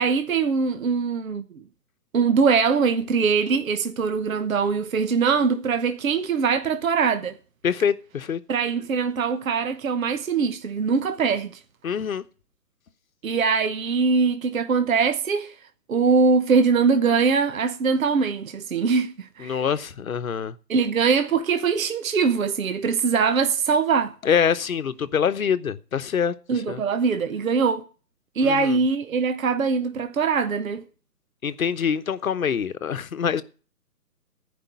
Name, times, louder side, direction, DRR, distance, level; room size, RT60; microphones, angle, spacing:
voice 1, 0.0-1.6 2.1-7.4 8.5-11.6 13.2-15.5 15.9-19.6 20.7-24.1 26.5-27.8 28.4-30.8, right 5 dB, 55° right, 1.0 m, -22 dB
voice 2, 7.6-8.4 11.8-12.2 19.4-20.5 24.2-26.8 28.4-28.8 31.4-33.4, left 7 dB, 55° left, 1.0 m, -25 dB
14.5 x 5.3 x 9.4 m
hypercardioid pair, 160°, 48 cm